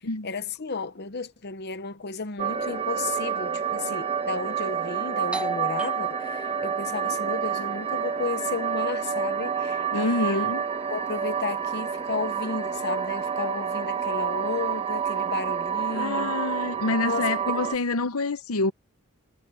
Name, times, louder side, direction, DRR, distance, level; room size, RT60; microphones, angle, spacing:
voice 1, 0.2-10.4 10.9-16.3 17.0-17.6, left 4 dB, 50° left, 0.9 m, -33 dB
sound 1, 2.4-17.8, right 7 dB, 25° right, 1.4 m, -29 dB
Doorbell, 5.3-10.7, right 2 dB, 5° right, 0.9 m, -38 dB
voice 2, 9.9-10.6 15.9-18.7, left 3 dB, 90° left, 0.9 m, -27 dB
head